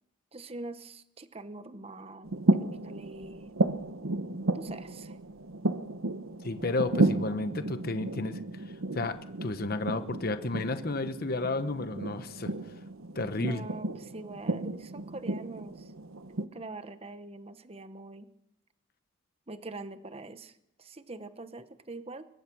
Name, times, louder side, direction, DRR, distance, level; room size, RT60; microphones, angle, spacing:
voice 1, 0.3-2.3 2.6-3.5 4.5-5.2 13.3-15.9 16.4-18.3 19.5-22.3, right 2 dB, 30° right, 11 dB, 0.9 m, -43 dB
sound 1, 2.2-16.5, right 2 dB, 90° right, 1.1 m, -33 dB
voice 2, 6.4-12.5 13.1-13.7, left 2 dB, 50° left, 10 dB, 1.1 m, -32 dB
22.5 x 21.5 x 6.2 m, 0.79 s
head